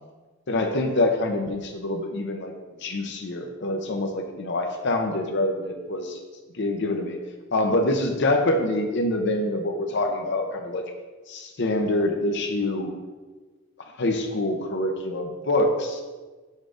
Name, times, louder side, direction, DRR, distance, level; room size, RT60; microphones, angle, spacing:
voice 1, 0.5-2.5 2.8-6.2 6.6-7.2 7.5-10.8 11.3-12.9 14.0-16.0, left 1 dB, 60° left, 3 dB, 0.8 m, -25 dB
7.3 x 3.8 x 4.9 m, 1.3 s
head